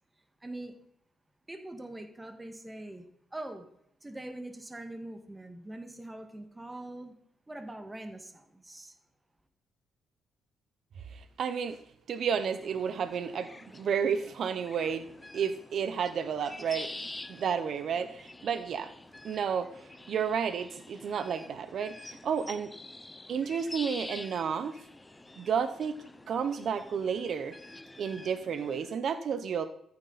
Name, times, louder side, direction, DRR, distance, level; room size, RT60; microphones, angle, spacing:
voice 1, 0.4-0.7 1.5-3.0 3.3-3.6 4.0-7.1 7.5-8.9, right 1 dB, 15° right, 5 dB, 1.8 m, -43 dB
voice 2, 11.1-11.8 12.1-15.1 15.3-16.9 17.3-18.9 19.2-22.7 23.3-24.8 25.4-26.0 26.3-27.6 28.0-29.7, right 7 dB, 60° right, 10 dB, 0.9 m, -31 dB
sound 1, 12.3-28.9, left 2 dB, 15° left, 1.0 m, -47 dB
14.0 x 9.7 x 4.2 m, 0.75 s
cardioid pair, 90°, 0 cm